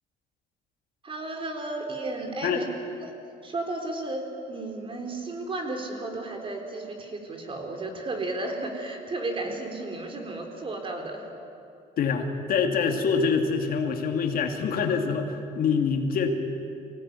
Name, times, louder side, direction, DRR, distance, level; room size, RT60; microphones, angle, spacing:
voice 1, 1.0-2.6 3.0-3.1 3.4-11.3, right 2 dB, 30° right, 3 dB, 4.1 m, -33 dB
voice 2, 12.0-16.3, left 5 dB, 60° left, 4 dB, 2.6 m, -25 dB
24.5 x 18.0 x 9.8 m, 2.7 s
cardioid pair, 110°, 17 cm